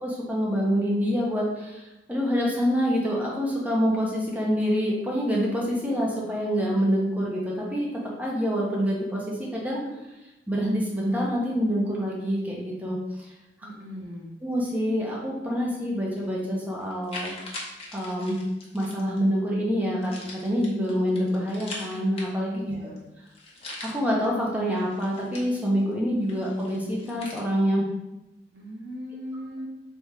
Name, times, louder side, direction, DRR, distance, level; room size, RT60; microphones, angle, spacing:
voice 1, 0.0-7.9 8.2-9.8 10.5-13.0 14.4-17.3 17.9-18.4 18.7-22.8 23.8-27.8, equal, 10° right, -4 dB, 0.7 m, -26 dB
voice 2, 13.6-14.3 22.6-23.0 28.5-29.6, equal, 80° right, -3 dB, 1.2 m, -39 dB
sound 1, 16.2-16.3 16.8-19.2 20.0-22.6 23.0-23.1 23.3-24.3 24.7-25.9 26.3-27.4, left 2 dB, 35° left, 0.9 m, -41 dB
3.8 x 3.6 x 3.2 m, 0.96 s
head